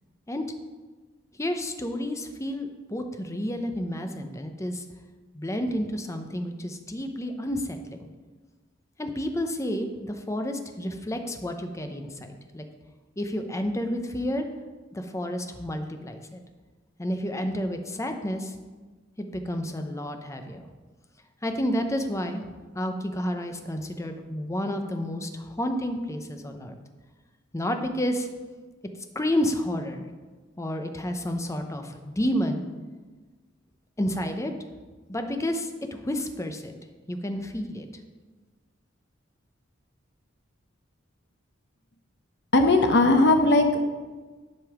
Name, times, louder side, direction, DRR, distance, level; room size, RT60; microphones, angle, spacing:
voice 1, 1.4-4.8 5.3-8.1 9.0-12.7 13.2-14.5 14.9-16.4 17.0-18.6 19.2-20.7 21.4-22.4 22.7-26.8 27.5-28.3 29.1-30.1 30.6-32.6 34.0-34.5 35.1-36.7 37.1-37.9, equal, 15° left, 5 dB, 0.7 m, -30 dB
voice 2, 42.5-43.8, left 2 dB, 60° left, 5 dB, 1.0 m, -18 dB
10.5 x 5.4 x 5.0 m, 1.3 s
head